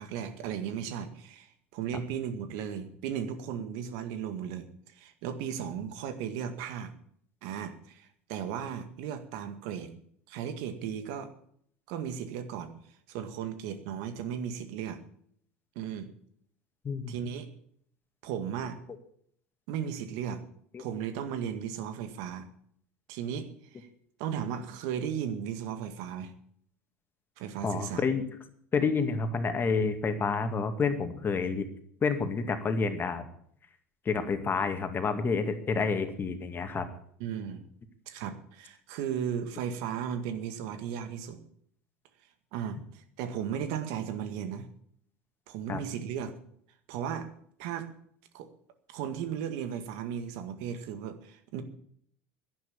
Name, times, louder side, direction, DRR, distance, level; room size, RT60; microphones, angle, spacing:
voice 1, 0.0-4.7 4.9-6.9 7.4-9.9 10.3-11.3 11.9-12.7 13.1-15.0 15.8-16.1 17.1-17.5 18.2-18.8 19.7-20.4 20.8-22.5 23.1-23.9 24.2-26.3 27.4-28.0 37.2-37.6 38.1-41.4 42.5-44.7 45.5-46.3 46.9-47.3 47.6-47.9 48.3-48.5 48.9-51.6, right 8 dB, 70° right, 9 dB, 2.0 m, -36 dB
voice 2, 16.8-17.2 20.7-20.8 27.6-28.2 28.7-31.6 32.0-33.3 34.1-36.9 45.7-45.8, left 5 dB, 30° left, 8 dB, 2.2 m, -29 dB
11.0 x 11.0 x 8.6 m, 0.65 s
hypercardioid pair, 80°, 7 cm